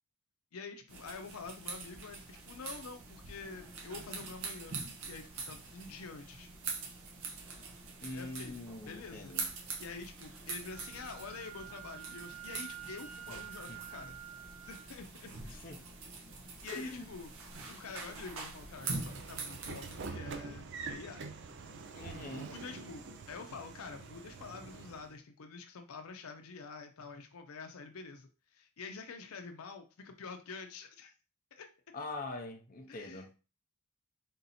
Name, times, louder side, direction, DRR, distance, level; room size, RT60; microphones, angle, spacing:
voice 1, 0.5-4.8 5.1-6.5 8.1-8.6 8.9-9.4 9.8-14.2 14.6-15.7 16.6-17.3 17.7-21.3 22.5-31.1 31.6-31.7 32.9-33.3, left 4 dB, 80° left, 0.6 m, -47 dB
sound 1, 0.9-20.1, right 4 dB, 75° right, 1.0 m, -44 dB
voice 2, 8.0-9.5 13.3-13.4 13.7-13.8 15.6-15.8 16.7-17.1 21.9-22.5 31.9-33.3, left 2 dB, 40° left, 0.7 m, -43 dB
Wind instrument woodwind instrument, 10.7-14.9, right 12 dB, 40° right, 1.8 m, -49 dB
Train / Sliding door, 18.6-25.1, right 4 dB, 55° right, 0.5 m, -46 dB
3.7 x 2.7 x 4.1 m
head